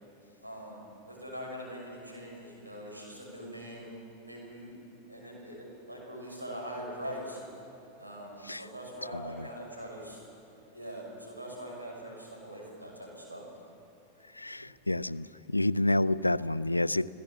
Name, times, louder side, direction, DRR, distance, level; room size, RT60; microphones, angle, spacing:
voice 1, 0.4-4.0 4.2-4.8 5.1-7.4 8.0-10.2 10.7-13.4, equal, 85° right, -2 dB, 6.2 m, -42 dB
voice 2, 9.1-9.5 14.4-17.1, left 1 dB, 85° left, 18 dB, 0.4 m, -29 dB
29.5 x 16.0 x 7.3 m, 2.8 s
figure-of-eight pair, 90°, 0 cm